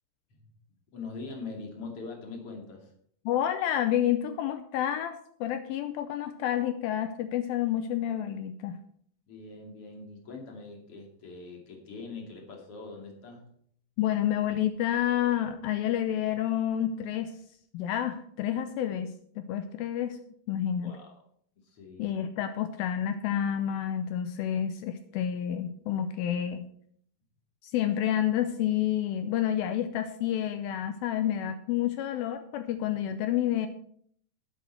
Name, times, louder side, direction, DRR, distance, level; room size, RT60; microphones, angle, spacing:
voice 1, 0.9-2.9 9.3-13.5 20.8-21.2 21.6-22.5, left 3 dB, 40° left, 1 dB, 2.8 m, -43 dB
voice 2, 3.3-8.8 14.0-17.3 17.7-20.2 20.5-20.9 22.0-26.7 27.7-33.7, left 10 dB, 85° left, 9 dB, 2.1 m, -29 dB
11.5 x 10.5 x 4.4 m, 0.63 s
omnidirectional pair, 4.9 m